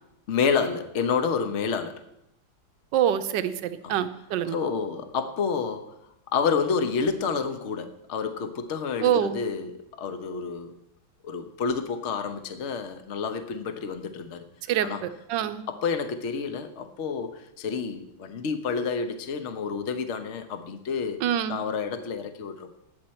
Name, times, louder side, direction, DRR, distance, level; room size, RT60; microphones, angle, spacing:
voice 1, 0.3-2.0 3.8-3.9 4.5-6.0 6.3-10.8 11.2-14.5 14.8-15.0 15.7-21.2 21.5-22.8, left 5 dB, 45° left, 8 dB, 1.1 m, -29 dB
voice 2, 2.9-4.6 9.0-9.4 14.7-15.6 21.2-21.6, right 10 dB, 70° right, 11 dB, 1.4 m, -25 dB
19.0 x 8.3 x 4.4 m, 0.82 s
omnidirectional pair, 2.1 m